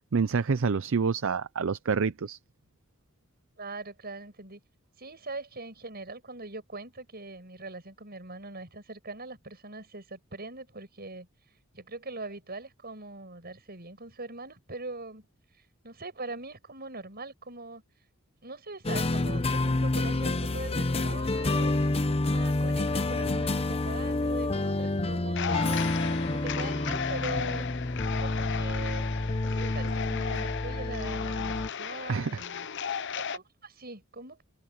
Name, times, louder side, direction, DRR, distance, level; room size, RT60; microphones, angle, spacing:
voice 1, 0.1-2.4 32.1-32.4, right 5 dB, 65° right, 0.5 m, -27 dB
voice 2, 3.6-4.6 5.0-11.3 11.7-15.3 15.8-17.8 18.4-25.8 26.3-27.6 28.2-29.0 29.4-32.7 33.2-34.4, right 3 dB, 45° right, 7.8 m, -42 dB
sound 1, 18.8-31.7, left 2 dB, 30° left, 0.8 m, -28 dB
sound 2, 25.3-33.4, left 7 dB, 60° left, 0.9 m, -35 dB
head